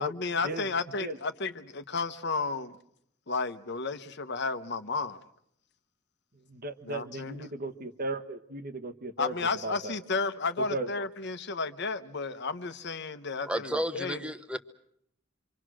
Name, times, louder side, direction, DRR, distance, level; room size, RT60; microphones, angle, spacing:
voice 1, 0.0-2.8 3.3-5.2 6.9-7.5 9.2-14.2, left 4 dB, 60° left, 1.2 m, -33 dB
voice 2, 6.5-9.3 9.6-10.0 10.7-10.9, right 2 dB, 50° right, 1.4 m, -36 dB
voice 3, 13.4-14.6, equal, 5° right, 1.1 m, -32 dB
26.0 x 25.5 x 6.3 m
head